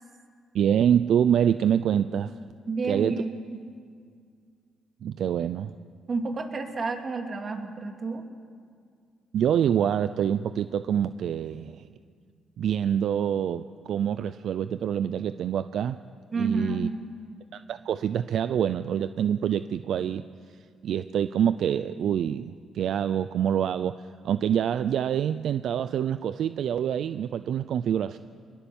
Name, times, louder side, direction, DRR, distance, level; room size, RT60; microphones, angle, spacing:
voice 1, 0.5-2.3 2.9-3.2 5.0-5.7 9.3-11.9 12.6-16.0 16.4-16.9 17.5-20.2 20.8-24.0 24.2-28.2, right 9 dB, 70° right, 12 dB, 0.6 m, -26 dB
voice 2, 2.7-3.2 3.5-3.6 6.1-8.2 16.3-17.0, right 3 dB, 40° right, 4 dB, 2.8 m, -30 dB
25.5 x 21.0 x 7.2 m, 2.1 s
cardioid pair, 90°, 0 cm